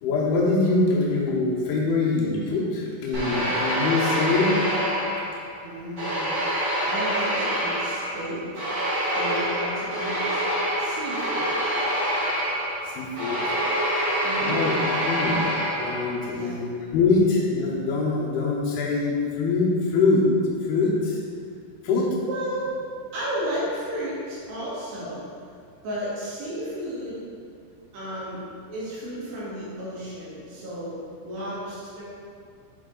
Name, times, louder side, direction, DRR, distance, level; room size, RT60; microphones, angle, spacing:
voice 1, 0.0-4.6 12.9-13.4 14.4-14.8 15.1-20.3 20.6-21.2 21.8-22.1, left 3 dB, 75° left, -4 dB, 2.6 m, -24 dB
sound 1, 3.1-5.5 6.0-16.3, equal, 90° right, 0.9 m, -26 dB
voice 2, 5.6-8.6 9.1-10.4 10.8-11.5 14.2-14.6 16.2-16.5 22.3-22.7 23.1-25.3 25.8-27.2 27.9-30.9 31.2-32.0, equal, 75° right, -8 dB, 3.8 m, -33 dB
7.3 x 4.9 x 3.8 m, 2.3 s
omnidirectional pair, 4.9 m